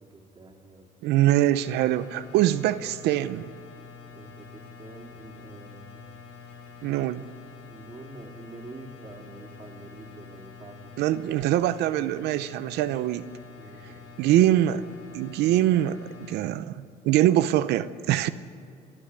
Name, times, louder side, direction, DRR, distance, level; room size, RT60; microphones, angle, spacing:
voice 1, 0.0-0.9 4.1-6.0 7.6-10.9 13.6-14.4, right 3 dB, 30° right, 0 dB, 3.1 m, -46 dB
voice 2, 1.0-3.5 6.8-7.3 11.0-13.3 14.2-14.8 15.1-18.3, right 13 dB, 85° right, 13 dB, 0.7 m, -23 dB
sound 1, 1.5-16.4, left 5 dB, 90° left, 4.8 m, -47 dB
29.0 x 9.8 x 9.7 m, 2.4 s
cardioid pair, 110°, 17 cm